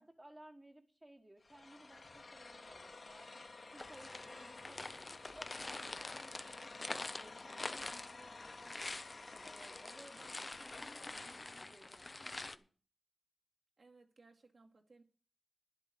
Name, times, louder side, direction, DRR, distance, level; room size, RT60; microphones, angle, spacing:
voice 1, 0.0-3.3 3.7-12.7, right 1 dB, 15° right, 1.6 m, -60 dB
sound 1, 1.4-11.7, left 3 dB, 50° left, 1.9 m, -53 dB
sound 2, 3.8-12.6, left 2 dB, 35° left, 0.8 m, -46 dB
voice 2, 13.8-15.0, right 3 dB, 60° right, 2.3 m, -63 dB
11.0 x 8.2 x 6.8 m
wide cardioid pair, 75°, 0 cm